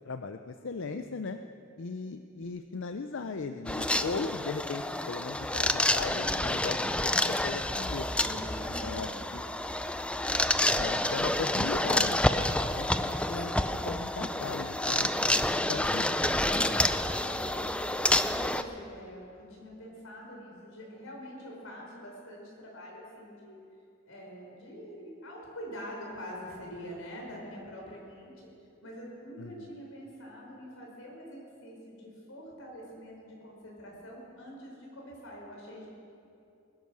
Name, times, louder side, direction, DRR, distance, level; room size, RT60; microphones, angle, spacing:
voice 1, 0.0-1.4 1.8-8.1 8.7-9.4 10.8-13.6 13.8-15.1 15.6-16.2 29.4-29.7, left 4 dB, 65° left, 8 dB, 0.5 m, -38 dB
sound 1, 3.7-18.6, left 1 dB, 5° left, 0.4 m, -28 dB
voice 2, 8.1-9.0 16.2-23.6 24.1-28.5 28.8-35.9, equal, 90° left, -2 dB, 5.1 m, -45 dB
21.0 x 11.0 x 6.2 m, 2.6 s
head